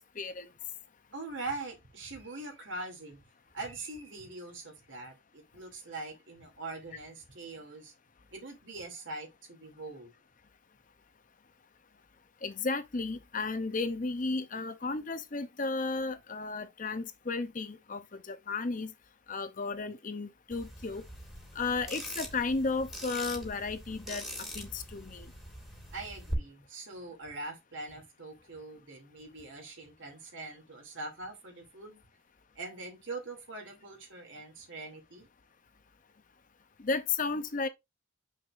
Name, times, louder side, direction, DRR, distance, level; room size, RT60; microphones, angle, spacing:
voice 1, 0.2-0.5 12.4-18.9 19.3-21.0 21.6-25.3 36.8-37.7, left 3 dB, 40° left, 0.6 m, -34 dB
voice 2, 1.1-3.2 3.5-7.9 8.3-10.1 25.9-32.0 32.5-35.3, right 2 dB, 60° right, 2.7 m, -43 dB
sound 1, 20.5-26.3, equal, ahead, 1.9 m, -43 dB
6.7 x 6.1 x 2.5 m
head